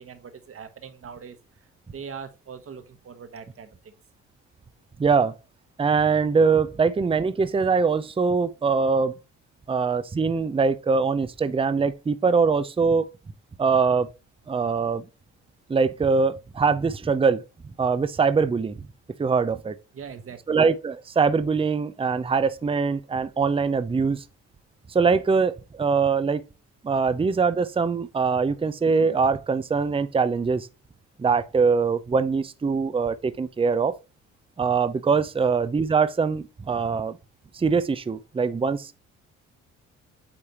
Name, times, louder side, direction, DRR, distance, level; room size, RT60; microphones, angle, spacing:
voice 1, 0.0-3.9 19.9-20.6, right 6 dB, 45° right, 1.4 m, -42 dB
voice 2, 5.0-5.3 5.8-9.1 9.7-13.1 13.6-14.1 14.5-15.0 15.7-17.4 17.8-18.8 19.2-19.8 20.5-24.2 24.9-26.4 26.8-30.7 31.2-33.9 34.6-37.2 37.5-39.0, right 5 dB, 20° right, 0.6 m, -23 dB
8.7 x 3.3 x 4.2 m
cardioid pair, 90°, 30 cm